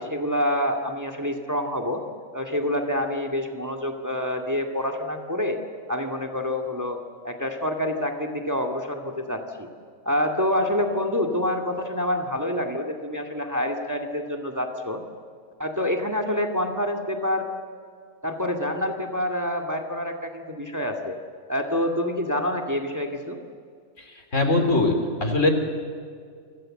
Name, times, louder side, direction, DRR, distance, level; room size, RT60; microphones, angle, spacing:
voice 1, 0.0-2.0 2.3-5.6 5.9-7.0 7.2-9.7 10.1-15.0 15.6-17.5 18.2-21.2 21.5-23.4, left 1 dB, 15° right, 4 dB, 2.1 m, -27 dB
voice 2, 24.3-24.9 25.2-25.5, left 2 dB, 60° left, 5 dB, 3.8 m, -20 dB
29.0 x 25.5 x 7.7 m, 2.2 s
omnidirectional pair, 1.4 m